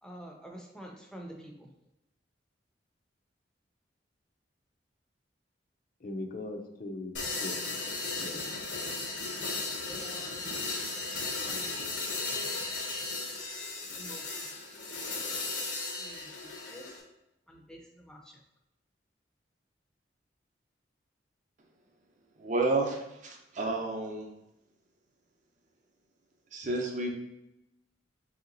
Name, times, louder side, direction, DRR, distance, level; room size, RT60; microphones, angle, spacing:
voice 1, 0.0-1.7 8.0-8.6 9.4-10.5 11.4-11.7 13.9-14.6 16.0-17.0 17.5-18.4, equal, 5° left, 0 dB, 0.5 m, -49 dB
voice 2, 6.0-7.8 8.2-8.7, left 2 dB, 50° left, 4 dB, 0.5 m, -40 dB
sound 1, 7.1-17.0, left 3 dB, 70° left, 0.9 m, -36 dB
voice 3, 22.4-24.3 26.5-27.1, right 2 dB, 45° right, 2 dB, 0.6 m, -31 dB
3.3 x 2.9 x 3.8 m, 0.88 s
head